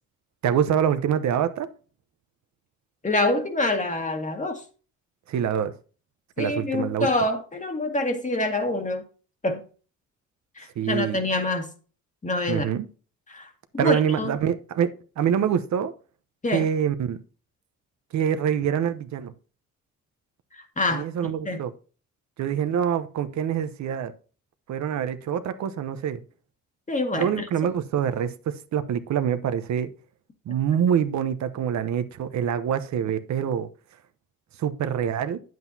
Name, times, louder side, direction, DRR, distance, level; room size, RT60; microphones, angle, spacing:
voice 1, 0.4-1.7 5.3-5.7 6.4-7.1 10.8-11.2 12.5-12.9 13.8-14.9 15.2-15.9 16.5-17.2 18.1-19.3 20.9-21.7 22.4-24.1 24.7-26.2 27.2-29.9 30.5-33.7 34.6-35.4, right 8 dB, 65° right, 0.9 m, -25 dB
voice 2, 3.0-4.6 6.4-9.0 9.4-9.6 10.6-11.7 12.2-12.7 13.3-14.3 16.4-16.7 20.5-21.6 26.9-27.5, left 2 dB, 25° left, 1.7 m, -26 dB
9.1 x 7.8 x 2.8 m
cardioid pair, 90°, 30 cm